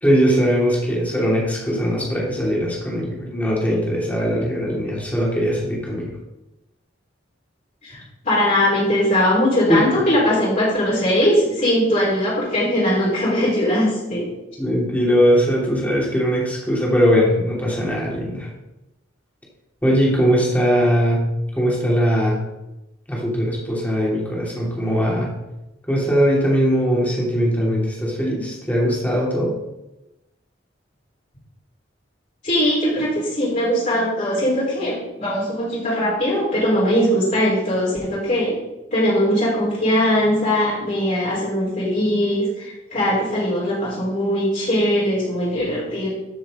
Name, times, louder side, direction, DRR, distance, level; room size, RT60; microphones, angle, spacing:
voice 1, 0.0-6.1 9.7-9.8 14.6-18.5 19.8-21.2 21.5-22.4 23.1-25.3 25.9-29.5, equal, 10° left, -4 dB, 3.0 m, -20 dB
voice 2, 7.8-14.3 32.4-38.6 38.9-46.1, equal, 40° left, -9 dB, 4.0 m, -20 dB
13.5 x 7.0 x 3.8 m, 0.98 s
head